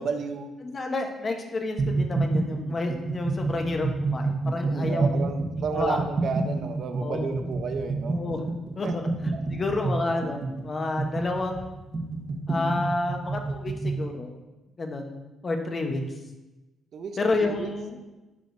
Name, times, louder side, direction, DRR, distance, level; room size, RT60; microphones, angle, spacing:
voice 1, 0.0-0.5 4.7-8.2 8.8-8.9 9.3-9.4 16.9-17.7, right 5 dB, 60° right, 7 dB, 0.7 m, -32 dB
voice 2, 0.6-5.2 5.7-6.0 7.0-7.5 8.1-8.4 8.7-11.7 12.5-14.4 14.8-15.2 15.4-16.0 17.2-18.0, left 2 dB, 35° left, 3 dB, 1.0 m, -30 dB
sound 1, 1.8-14.0, right 3 dB, 40° right, 1.2 m, -28 dB
10.5 x 5.0 x 2.7 m, 1.1 s
cardioid pair, 90°, 0 cm